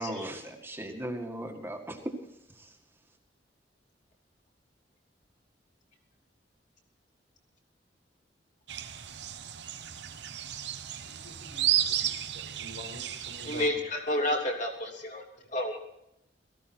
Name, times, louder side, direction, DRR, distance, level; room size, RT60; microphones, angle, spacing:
voice 1, 0.0-2.1, right 1 dB, 15° right, 3 dB, 1.8 m, -37 dB
sound 1, 8.7-13.7, right 11 dB, 70° right, 0.9 m, -33 dB
voice 2, 11.0-12.1 12.3-13.6, left 1 dB, 90° left, 3 dB, 5.1 m, -47 dB
voice 3, 13.4-15.2 15.5-15.8, left 1 dB, 45° left, 1 dB, 3.2 m, -30 dB
17.5 x 15.0 x 4.4 m, 0.80 s
head